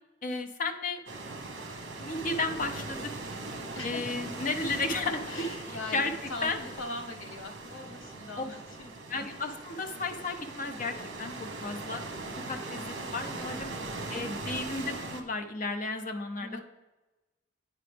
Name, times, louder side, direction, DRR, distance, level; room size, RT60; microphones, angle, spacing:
voice 1, 0.2-1.0 2.0-3.1 3.8-5.2 5.9-6.1 6.4-6.6 8.4-8.5 9.1-12.0 12.5-13.7 14.1-16.6, left 3 dB, 40° left, 6 dB, 0.7 m, -33 dB
sound 1, 1.1-15.2, right 2 dB, 60° right, 1.0 m, -40 dB
voice 2, 3.7-4.3 5.3-8.9 10.8-10.9 13.2-13.5 16.4-16.6, left 2 dB, 85° left, 3 dB, 1.1 m, -41 dB
8.9 x 5.0 x 3.4 m, 1.1 s
head